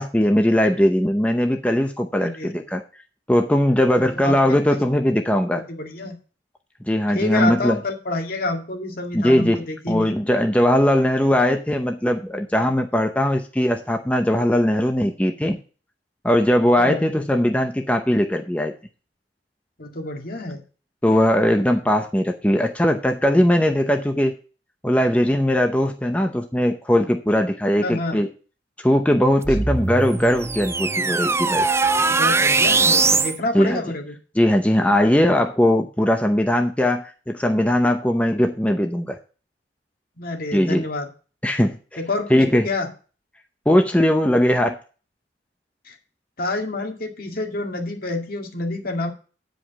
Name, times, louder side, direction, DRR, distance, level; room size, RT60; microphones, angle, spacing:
voice 1, 0.0-2.8 3.3-5.6 6.9-7.8 9.1-15.6 16.2-18.7 21.0-24.4 24.8-28.3 28.8-31.7 33.5-33.8 34.4-39.2 40.5-40.8 41.4-41.8 42.3-42.6 43.7-44.8, left 1 dB, 10° left, 5 dB, 0.7 m, -19 dB
voice 2, 2.2-2.6 3.9-4.8 5.7-6.2 7.1-10.2 16.8-17.1 19.8-20.6 27.8-28.2 32.1-34.2 40.2-41.1 42.0-42.9 45.9-46.0 46.4-49.1, left 2 dB, 55° left, 3 dB, 2.1 m, -28 dB
sound 1, 29.4-33.4, right 4 dB, 15° right, 0.4 m, -20 dB
9.5 x 5.2 x 6.9 m, 0.36 s
head